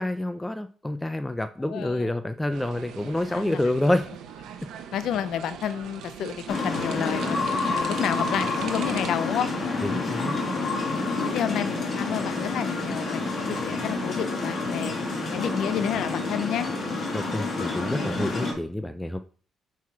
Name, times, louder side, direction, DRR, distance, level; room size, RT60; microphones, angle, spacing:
voice 1, 0.0-4.1 9.8-10.4 17.1-19.2, left 1 dB, 10° left, 9 dB, 0.5 m, -28 dB
voice 2, 1.7-2.1 3.3-3.6 4.9-9.5 9.8-10.7 11.2-14.9 15.3-16.7, left 9 dB, 75° left, 12 dB, 0.6 m, -31 dB
sound 1, 2.5-9.1, right 8 dB, 85° right, 0.8 m, -41 dB
sound 2, 6.5-18.5, left 3 dB, 50° left, 1.9 m, -28 dB
5.5 x 4.7 x 4.6 m, 0.41 s
cardioid pair, 90°, 0 cm